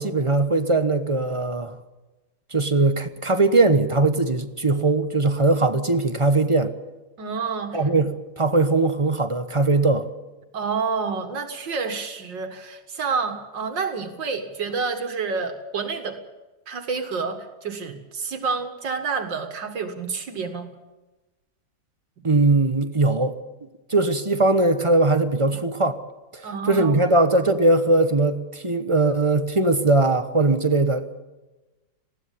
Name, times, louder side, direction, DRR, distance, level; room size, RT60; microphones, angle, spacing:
voice 1, 0.0-1.8 2.5-6.7 7.7-10.1 22.2-23.4 23.9-26.0 26.3-31.2, right 2 dB, 20° right, 9 dB, 0.9 m, -20 dB
voice 2, 7.2-8.0 10.5-16.2 16.7-20.7 25.5-25.6 26.4-27.1, right 5 dB, 80° right, 6 dB, 2.5 m, -29 dB
20.0 x 16.5 x 8.5 m, 1.1 s
omnidirectional pair, 1.9 m